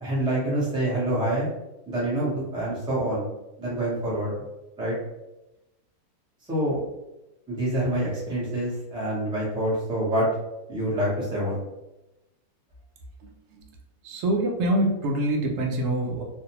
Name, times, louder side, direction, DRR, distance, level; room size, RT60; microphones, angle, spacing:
voice 1, 0.0-1.5 1.9-3.2 3.6-4.3 4.8-5.0 6.5-6.8 7.5-10.3 10.7-11.6, right 1 dB, 5° right, -7 dB, 0.5 m, -26 dB
voice 2, 13.2-13.6 14.0-16.2, right 1 dB, 70° right, 2 dB, 0.8 m, -25 dB
2.5 x 2.1 x 2.9 m, 0.96 s
omnidirectional pair, 1.6 m